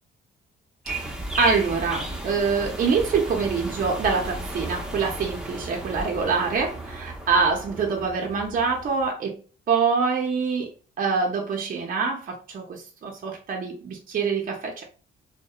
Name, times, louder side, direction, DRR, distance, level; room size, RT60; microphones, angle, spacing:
sound 1, 0.9-9.1, right 1 dB, 5° right, 0.7 m, -34 dB
voice 1, 1.4-9.4 9.7-10.7 11.0-14.8, right 5 dB, 45° right, 1 dB, 0.6 m, -25 dB
2.6 x 2.1 x 2.3 m, 0.37 s
cardioid pair, 90°, 20 cm